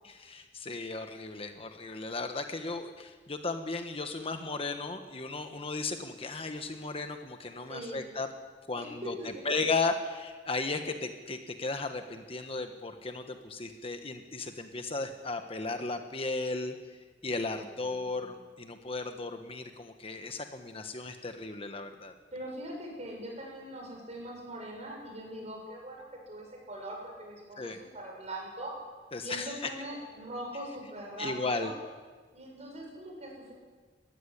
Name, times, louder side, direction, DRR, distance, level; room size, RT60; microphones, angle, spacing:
voice 1, 0.0-8.3 8.7-9.1 9.4-16.7 17.2-22.1 27.6-27.8 29.1-29.7 31.2-31.7, left 3 dB, 35° left, 6 dB, 1.2 m, -35 dB
voice 2, 7.7-8.0 8.8-9.3 17.5-18.3 22.3-28.7 29.2-31.7 32.3-33.5, right 1 dB, 40° right, 0 dB, 7.4 m, -42 dB
20.0 x 15.5 x 9.9 m, 1.4 s
head